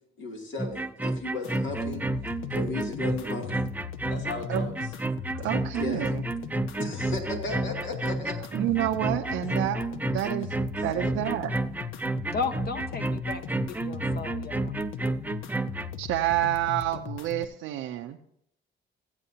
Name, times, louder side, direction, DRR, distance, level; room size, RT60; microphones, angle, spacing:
voice 1, 0.2-2.0 2.5-3.7 4.1-4.7 5.4-5.5 5.8-6.1 6.8-8.3 9.3-9.4 10.1-10.4 10.9-11.2, left 3 dB, 75° left, 1 dB, 2.5 m, -36 dB
sound 1, 0.6-15.9, right 2 dB, 10° right, 0.3 m, -31 dB
sound 2, 1.4-17.4, left 8 dB, 90° left, 0.6 m, -39 dB
voice 2, 5.3-6.2 8.5-9.8 10.1-10.5 10.8-11.5 16.0-18.2, right 14 dB, 90° right, 3 dB, 0.6 m, -28 dB
voice 3, 12.3-14.7, left 4 dB, 50° left, 8 dB, 1.2 m, -34 dB
15.5 x 8.7 x 2.8 m, 0.73 s
cardioid pair, 90°, 20 cm